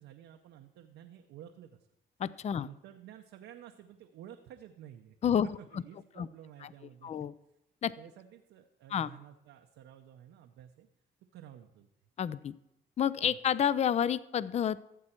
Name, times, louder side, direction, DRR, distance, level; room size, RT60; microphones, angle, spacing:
voice 1, 0.0-1.8 2.6-7.1 8.0-10.9 11.3-11.9 13.3-13.4, right 11 dB, 85° right, 4 dB, 0.7 m, -52 dB
voice 2, 2.2-2.7 5.2-5.5 5.7-5.8 6.2-6.3 7.0-7.3 7.8-7.9 8.9-9.1 12.2-12.5 13.0-14.8, left 9 dB, 35° left, 18 dB, 0.4 m, -29 dB
13.5 x 7.6 x 4.4 m, 0.84 s
cardioid pair, 90°, 20 cm